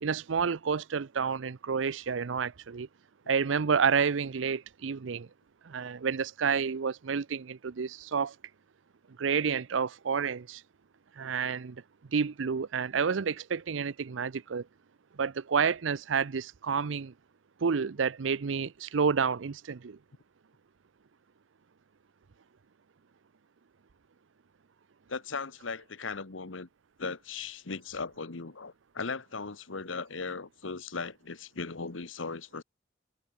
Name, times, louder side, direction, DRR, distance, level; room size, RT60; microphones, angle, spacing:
voice 1, 0.0-2.9 3.3-5.3 5.6-8.3 9.2-10.6 11.2-11.8 12.1-14.6 15.2-17.1 17.6-20.0, right 6 dB, 80° right, 0.6 m, -29 dB
voice 2, 25.1-26.7 27.0-32.6, left 4 dB, 85° left, 1.2 m, -38 dB
head